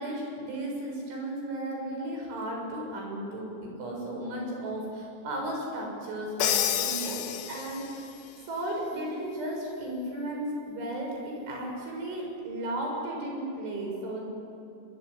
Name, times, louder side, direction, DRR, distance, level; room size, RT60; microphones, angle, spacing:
voice 1, 0.0-8.1 8.5-14.3, right 1 dB, 75° right, 0 dB, 9.4 m, -35 dB
Crash cymbal, 6.4-8.1, left 10 dB, 65° left, 2.7 m, -29 dB
23.0 x 23.0 x 9.8 m, 2.7 s
omnidirectional pair, 5.5 m